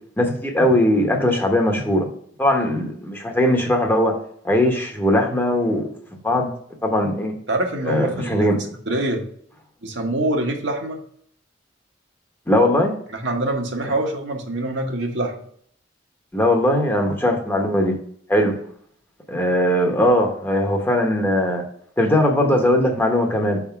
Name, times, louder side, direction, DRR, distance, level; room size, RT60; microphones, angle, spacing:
voice 1, 0.2-2.1 2.4-4.1 4.4-6.5 6.8-7.3 7.8-8.6 12.5-12.9 16.3-17.9 18.3-18.6 19.3-21.6 22.0-23.6, left 1 dB, 10° left, 2 dB, 0.9 m, -19 dB
voice 2, 7.5-8.5 8.9-9.2 9.8-11.0 13.1-15.3, right 1 dB, 65° right, 2 dB, 1.1 m, -25 dB
5.0 x 3.6 x 5.7 m, 0.62 s
head